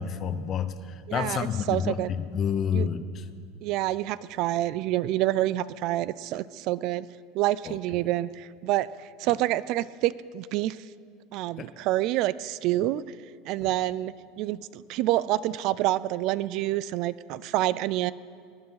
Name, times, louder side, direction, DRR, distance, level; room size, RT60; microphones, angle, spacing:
voice 1, 0.0-3.3 7.6-7.8 11.6-11.7 13.7-13.8, left 7 dB, 30° left, 11 dB, 0.7 m, -29 dB
voice 2, 1.1-2.1 2.7-2.9 3.6-7.1 7.3-10.8 11.3-13.0 13.5-18.1, right 15 dB, 50° right, 19 dB, 0.3 m, -27 dB
20.0 x 9.6 x 5.7 m, 2.2 s
supercardioid pair, 150°, 0 cm